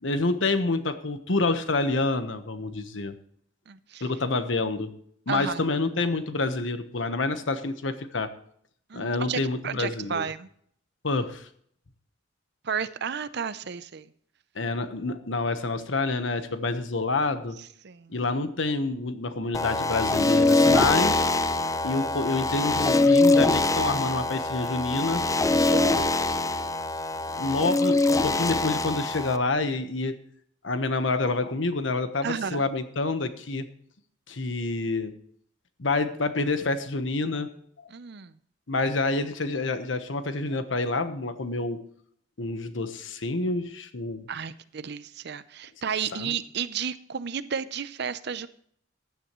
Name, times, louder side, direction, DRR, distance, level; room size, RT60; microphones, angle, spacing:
voice 1, 0.0-3.1 4.0-4.9 5.3-8.3 8.9-10.3 11.0-11.5 14.5-17.6 18.1-21.3 21.8-25.2 27.4-30.2 30.6-33.7 34.3-35.1 35.8-37.5 38.7-41.8 42.4-44.3 46.1-46.4, left 3 dB, 85° left, 10 dB, 1.1 m, -28 dB
voice 2, 3.7-4.0 5.3-5.6 8.9-10.5 12.6-14.1 17.8-18.2 25.7-26.8 32.2-32.6 37.9-38.3 44.3-48.5, right 6 dB, 60° right, 14 dB, 0.6 m, -33 dB
sound 1, 19.5-29.4, left 2 dB, 20° left, 0.5 m, -23 dB
15.5 x 10.5 x 3.1 m, 0.64 s
head